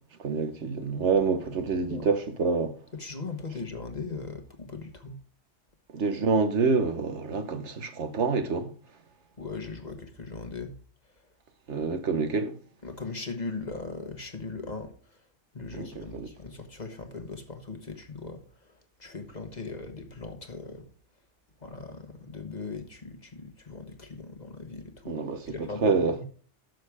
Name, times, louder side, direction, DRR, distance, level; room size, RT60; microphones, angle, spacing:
voice 1, 0.2-2.7 5.9-8.7 11.7-12.5 15.7-16.3 25.1-26.3, right 4 dB, 70° right, 1.4 m, -27 dB
voice 2, 1.1-2.1 2.9-5.2 9.4-10.7 11.8-11.9 12.8-14.9 15.5-18.4 18.7-20.9 21.6-25.1 25.4-26.3, left 4 dB, 35° left, 1.4 m, -39 dB
11.0 x 6.7 x 4.9 m
omnidirectional pair, 1.3 m